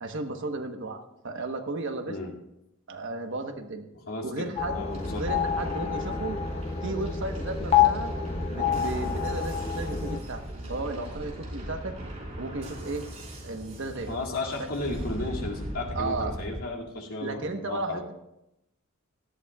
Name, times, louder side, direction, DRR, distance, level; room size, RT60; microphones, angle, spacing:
voice 1, 0.0-2.2 2.9-3.8 4.2-4.8 5.1-6.4 6.8-8.1 8.5-10.4 10.7-11.9 12.4-13.0 13.4-14.2 14.6-14.7 15.9-16.3 17.2-18.1, right 2 dB, 60° right, 6 dB, 1.2 m, -34 dB
voice 2, 4.1-5.3 5.8-5.9 14.1-18.1, left 2 dB, 85° left, -3 dB, 2.4 m, -34 dB
sound 1, 4.6-10.2, left 8 dB, 30° left, 0.7 m, -28 dB
sound 2, 4.9-16.6, right 1 dB, 30° right, 4.4 m, -39 dB
18.0 x 14.0 x 2.4 m, 0.87 s
head